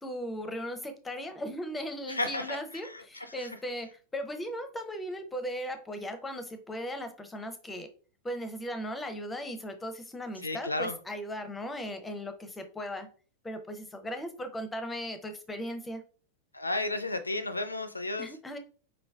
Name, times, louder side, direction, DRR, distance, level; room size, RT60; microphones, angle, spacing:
voice 1, 0.0-7.9 8.2-13.1 13.4-16.0 18.2-18.6, equal, 10° left, 0.6 m, -37 dB
voice 2, 2.1-2.6 3.4-3.5 10.4-11.0 16.5-18.3, left 2 dB, 80° left, 0.4 m, -32 dB
4.9 x 3.2 x 2.3 m
figure-of-eight pair, 90°, 0 cm